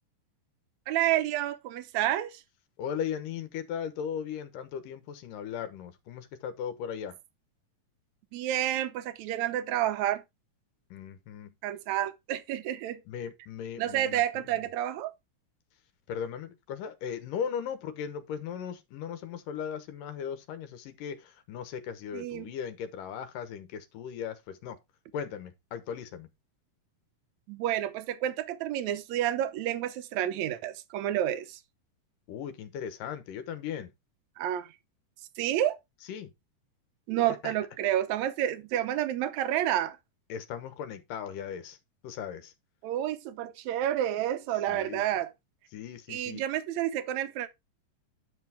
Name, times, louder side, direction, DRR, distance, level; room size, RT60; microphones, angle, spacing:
voice 1, 0.9-2.4 8.3-10.2 11.6-13.0 13.8-15.1 22.1-22.5 27.5-31.6 34.4-34.7 35.4-35.8 37.1-40.0 42.8-45.3 46.1-47.5, right 12 dB, 70° right, 1.9 m, -29 dB
voice 2, 2.8-7.2 10.9-11.5 13.1-14.2 16.1-24.8 25.1-26.3 32.3-33.9 36.1-36.3 37.4-37.5 40.3-41.8 42.0-42.5 44.7-45.0 45.7-46.4, left 8 dB, 75° left, 2.6 m, -37 dB
10.5 x 6.1 x 3.4 m
omnidirectional pair, 4.0 m